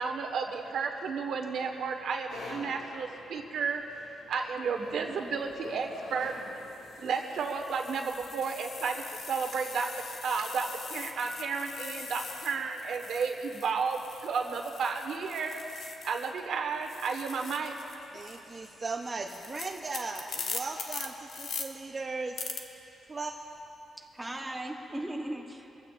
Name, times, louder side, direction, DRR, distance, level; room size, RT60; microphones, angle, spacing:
voice 1, 0.0-3.8 4.3-6.3 7.0-9.9 10.2-15.6 16.0-17.7, right 5 dB, 70° right, 3 dB, 1.3 m, -32 dB
sound 1, 2.3-7.2, left 2 dB, 90° left, 2.4 m, -47 dB
sound 2, 5.3-5.5 6.3-16.5 16.7-21.7 22.4-22.6, left 5 dB, 65° left, 1.1 m, -42 dB
voice 2, 18.1-22.3 23.1-23.3, right 3 dB, 25° right, 0 dB, 0.7 m, -37 dB
voice 3, 24.0-25.8, right 1 dB, 5° right, 1 dB, 1.0 m, -38 dB
23.5 x 15.5 x 2.5 m, 2.9 s
wide cardioid pair, 150°, 0 cm